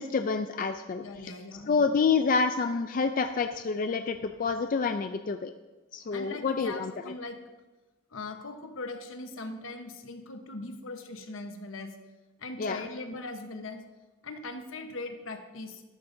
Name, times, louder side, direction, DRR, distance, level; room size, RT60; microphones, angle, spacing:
voice 1, 0.0-1.0 1.7-5.5 5.9-6.9 12.6-12.8, left 5 dB, 40° left, 7 dB, 0.4 m, -28 dB
voice 2, 1.0-1.9 6.1-7.4 8.1-12.0 12.4-13.8 14.2-15.8, left 2 dB, 75° left, 6 dB, 1.1 m, -40 dB
12.5 x 12.0 x 2.7 m, 1.2 s
head